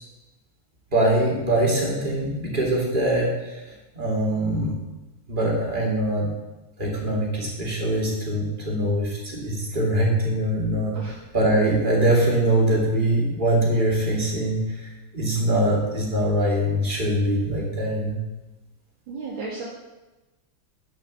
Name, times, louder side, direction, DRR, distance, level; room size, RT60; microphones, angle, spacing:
voice 1, 0.9-3.6 3.9-4.7 5.3-6.3 6.8-11.0 11.3-18.2, right 1 dB, 25° right, -3 dB, 2.8 m, -23 dB
voice 2, 19.1-19.6, right 3 dB, 85° right, -6 dB, 2.6 m, -34 dB
9.5 x 7.3 x 6.6 m, 1.1 s
omnidirectional pair, 2.1 m